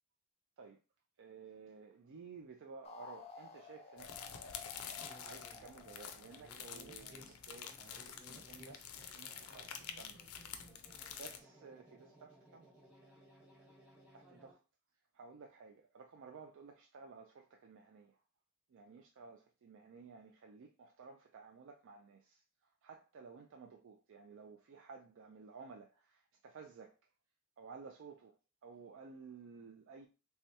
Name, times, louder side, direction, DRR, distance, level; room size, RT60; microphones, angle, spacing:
voice 1, 1.2-4.4 5.2-10.2 11.1-12.7 14.1-14.6 15.1-18.2 18.7-22.4 22.8-27.0 27.6-28.3 28.6-30.1, right 5 dB, 60° right, 0.4 m, -55 dB
sound 1, 2.8-7.3, left 4 dB, 30° left, 0.5 m, -54 dB
sound 2, 4.0-11.4, left 8 dB, 85° left, 0.5 m, -48 dB
sound 3, 5.0-14.5, equal, 5° right, 1.1 m, -61 dB
3.4 x 3.2 x 2.8 m
head